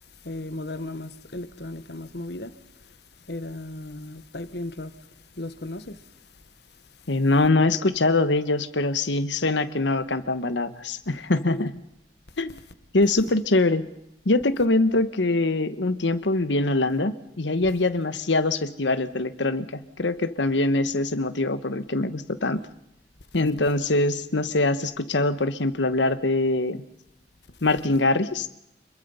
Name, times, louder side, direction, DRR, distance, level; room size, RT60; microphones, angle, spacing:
voice 1, 0.2-2.5 2.9-3.0 3.3-5.0 5.3-6.0 11.5-11.7, left 1 dB, 65° left, 1.3 m, -35 dB
voice 2, 7.1-11.7 12.4-12.6 12.9-13.9 14.2-22.6 23.3-26.8 27.6-28.5, left 2 dB, 80° left, 1.2 m, -23 dB
27.0 x 22.0 x 5.6 m
head